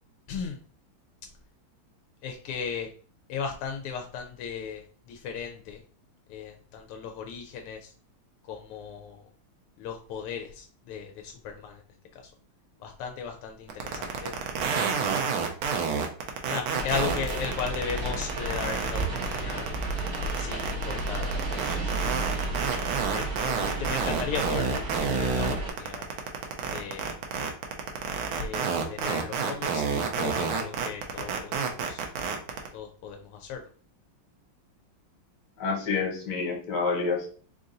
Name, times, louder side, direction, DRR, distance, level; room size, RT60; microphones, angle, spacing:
voice 1, 0.3-0.6 2.2-2.9 3.3-5.8 6.3-7.9 8.5-9.2 9.8-11.8 12.1-12.2 12.8-14.3 14.9-15.3 16.5-19.6 20.4-21.4 21.7-22.5 23.1-24.7 25.0-26.0 26.7-27.2 28.4-32.1 32.7-33.6, left 6 dB, 85° left, 3 dB, 1.5 m, -36 dB
sound 1, 13.7-32.7, right 6 dB, 75° right, 1.5 m, -28 dB
sound 2, 16.7-25.7, right 2 dB, 50° right, 1.4 m, -33 dB
voice 2, 35.6-37.3, left 4 dB, 55° left, 0 dB, 1.7 m, -28 dB
4.2 x 2.5 x 3.8 m, 0.43 s
omnidirectional pair, 2.4 m